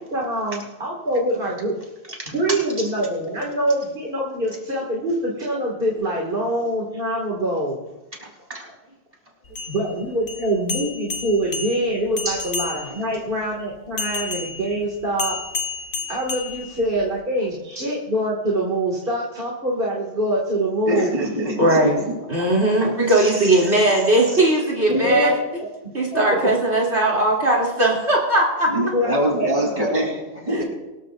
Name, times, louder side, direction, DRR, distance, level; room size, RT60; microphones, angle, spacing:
voice 1, 0.1-1.8 2.3-7.8 9.7-15.4 16.1-21.1 24.9-25.4 25.8-26.5 28.9-29.1 29.4-29.5, right 1 dB, 45° right, -3 dB, 2.3 m, -24 dB
voice 2, 8.2-8.7 12.3-12.4 20.9-22.0 22.8-23.6 24.3-24.4 24.9-25.1 28.7-30.6, equal, 30° right, -1 dB, 3.9 m, -25 dB
sound 1, 9.4-13.1 14.0-17.2, left 4 dB, 75° left, 1.4 m, -31 dB
voice 3, 21.6-22.0 22.3-25.4 25.9-28.7 30.5-30.6, right 1 dB, 65° right, -2 dB, 3.3 m, -19 dB
23.5 x 14.0 x 2.5 m, 1.1 s
omnidirectional pair, 1.2 m